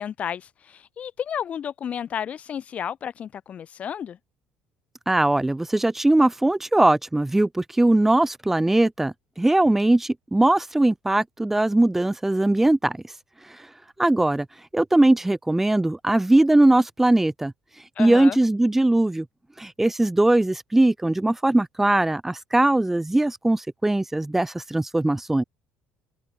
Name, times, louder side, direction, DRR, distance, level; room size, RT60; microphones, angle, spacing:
voice 1, 0.0-4.2 18.0-18.4, left 8 dB, 45° left, 6.4 m, -32 dB
voice 2, 5.1-13.0 13.5-13.7 14.0-14.5 14.7-17.5 18.0-19.2 19.6-25.4, right 1 dB, 10° right, 2.7 m, -20 dB
open air
supercardioid pair, 95°, 3 cm